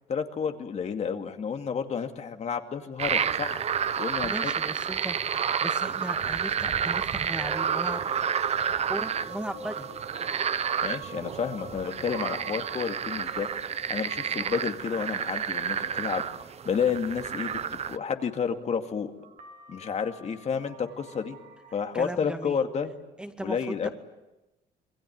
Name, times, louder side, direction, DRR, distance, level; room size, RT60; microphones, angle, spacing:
voice 1, 0.1-3.6 4.0-4.5 10.8-13.5 13.9-16.2 16.6-17.6 17.9-19.1 19.7-21.4 21.7-22.9 23.4-23.9, left 6 dB, 40° left, 6 dB, 2.3 m, -30 dB
sound 1, 3.0-18.0, right 7 dB, 40° right, 0.9 m, -30 dB
voice 2, 4.2-8.0 8.9-9.9 21.9-22.6 23.2-23.6 23.8-23.9, right 1 dB, 5° right, 7 dB, 2.1 m, -37 dB
sound 2, 6.7-18.6 19.2-21.8, right 4 dB, 55° right, 3.6 m, -46 dB
27.0 x 22.0 x 9.4 m, 0.99 s
cardioid pair, 110°, 17 cm